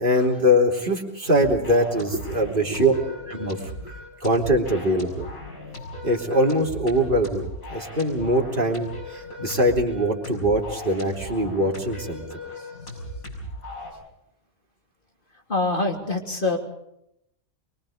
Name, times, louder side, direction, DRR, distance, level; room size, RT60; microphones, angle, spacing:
voice 1, 0.0-2.9 3.4-3.6 4.2-5.3 6.0-12.2, equal, 35° right, 1 dB, 3.5 m, -22 dB
sound 1, 1.3-13.9, left 1 dB, 70° left, 7.0 m, -37 dB
voice 2, 2.5-3.2 12.5-12.7 15.3-16.6, left 2 dB, 35° left, 3 dB, 3.3 m, -27 dB
24.5 x 23.5 x 5.2 m, 0.78 s
omnidirectional pair, 1.5 m